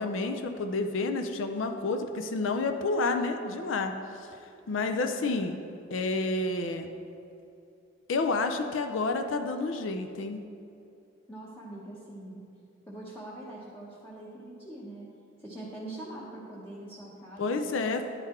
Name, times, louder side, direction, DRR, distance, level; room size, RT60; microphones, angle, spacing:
voice 1, 0.0-3.9 4.7-5.5 5.9-6.9 8.1-10.4 17.4-18.0, left 3 dB, 75° left, 6 dB, 0.5 m, -29 dB
voice 2, 11.3-12.4 12.9-15.1 15.4-18.0, right 1 dB, 10° left, -7 dB, 0.8 m, -43 dB
10.5 x 3.9 x 4.3 m, 2.6 s
head